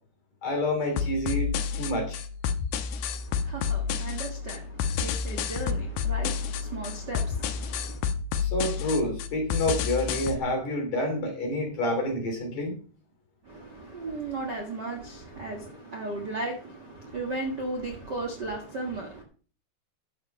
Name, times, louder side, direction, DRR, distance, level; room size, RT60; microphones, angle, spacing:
voice 1, 0.4-2.2 8.3-12.7, left 1 dB, 45° left, 2 dB, 4.1 m, -28 dB
sound 1, 1.0-10.4, left 6 dB, 80° left, 2.8 m, -30 dB
voice 2, 2.9-8.0 13.4-19.2, right 2 dB, 80° right, 0 dB, 0.9 m, -36 dB
11.0 x 7.0 x 5.0 m, 0.40 s
omnidirectional pair, 4.9 m